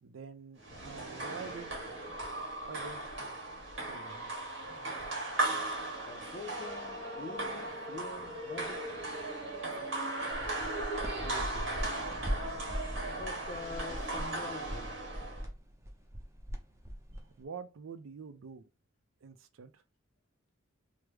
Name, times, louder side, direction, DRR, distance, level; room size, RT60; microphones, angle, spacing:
voice 1, 0.0-1.7 2.7-3.4 3.9-4.3 11.2-11.9 17.4-18.6 19.2-19.8, right 5 dB, 85° right, 0.4 m, -47 dB
sound 1, 0.6-15.5, right 2 dB, 65° right, 1.4 m, -37 dB
voice 2, 6.0-8.8 13.1-15.0, left 3 dB, 40° left, 0.5 m, -45 dB
sound 2, 10.3-17.4, equal, 15° right, 0.5 m, -40 dB
3.2 x 2.0 x 3.3 m
head